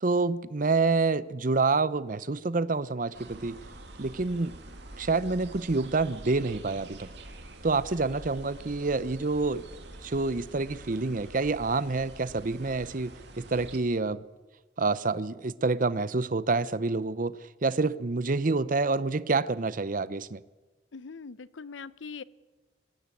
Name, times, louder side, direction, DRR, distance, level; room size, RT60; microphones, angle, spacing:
voice 1, 0.0-3.6 4.0-4.6 5.0-7.1 7.6-9.6 10.0-14.2 14.8-17.4 17.6-20.4, right 3 dB, 45° right, 0.7 m, -27 dB
sound 1, 3.1-13.8, right 2 dB, 65° right, 2.5 m, -46 dB
voice 2, 20.9-22.2, left 5 dB, 90° left, 0.7 m, -41 dB
22.5 x 16.5 x 8.5 m
head